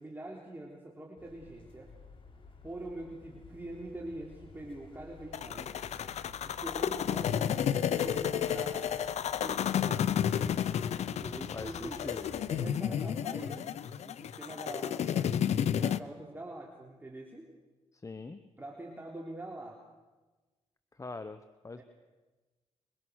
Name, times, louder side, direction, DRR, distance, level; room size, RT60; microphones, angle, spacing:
voice 1, 0.0-1.9 2.6-5.7 6.5-8.9 9.4-10.2 11.1-13.7 14.0-17.5 18.6-19.8 21.8-21.9, right 1 dB, 15° right, -1 dB, 3.4 m, -44 dB
sound 1, 1.2-12.7, left 3 dB, 50° left, 4.1 m, -53 dB
sound 2, 5.3-16.0, left 9 dB, 75° left, 0.8 m, -31 dB
voice 2, 11.5-12.3 18.0-18.4 21.0-21.4 21.6-21.8, left 3 dB, 25° left, 11 dB, 1.1 m, -42 dB
23.5 x 22.5 x 6.4 m, 1.2 s
cardioid pair, 80°, 11 cm